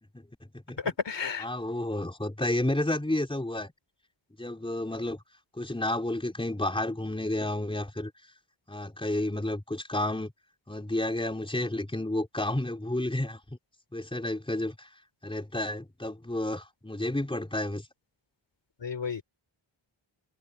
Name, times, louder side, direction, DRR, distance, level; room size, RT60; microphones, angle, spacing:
voice 1, 0.8-1.5 18.8-19.2, left 5 dB, 60° left, 3.2 m, -32 dB
voice 2, 1.4-3.7 4.4-5.2 5.5-8.1 8.7-10.3 10.7-13.4 13.9-14.9 15.2-17.9, left 1 dB, 10° left, 3.8 m, -31 dB
open air
wide cardioid pair, 120°, 48 cm